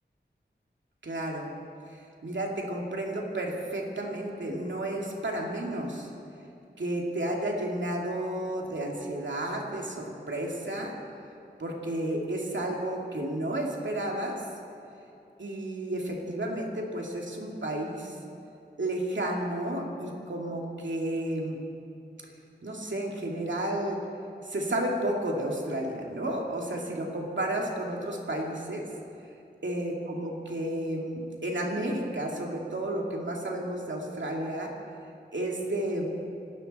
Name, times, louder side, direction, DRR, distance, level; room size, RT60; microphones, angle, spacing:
voice 1, 1.0-1.5 2.2-6.1 6.8-10.9 11.6-14.4 15.4-18.2 18.8-21.6 22.6-24.0 24.4-28.8 29.6-34.7 35.3-36.0, right 1 dB, 85° right, -1 dB, 2.6 m, -32 dB
26.5 x 12.5 x 4.3 m, 2.6 s
wide cardioid pair, 65°, 19 cm